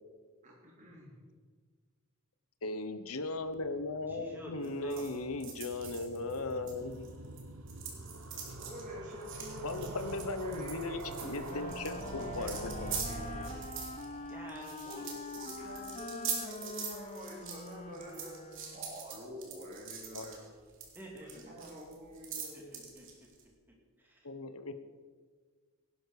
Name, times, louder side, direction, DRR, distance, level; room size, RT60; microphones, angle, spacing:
voice 1, 0.4-1.1 7.2-7.3 8.6-13.6 14.8-18.4 18.7-20.4 21.2-22.8, equal, 35° right, -3 dB, 3.1 m, -47 dB
voice 2, 2.6-7.1 9.6-12.9 20.1-20.3 24.2-24.8, left 3 dB, 80° left, 10 dB, 1.1 m, -37 dB
sound 1, 3.3-16.3 16.6-16.7 16.9-17.0 17.2-17.3, right 2 dB, 85° right, 1.0 m, -46 dB
voice 3, 4.1-5.1 14.3-14.9 20.9-21.6 22.5-23.1 24.0-24.3, equal, 10° right, -1 dB, 2.5 m, -49 dB
sound 2, 4.6-7.4 7.7-23.4, right 7 dB, 60° right, 2.9 m, -43 dB
Wind instrument woodwind instrument, 11.0-19.0, left 3 dB, 30° left, 0.5 m, -45 dB
17.5 x 11.5 x 4.9 m, 1.5 s
head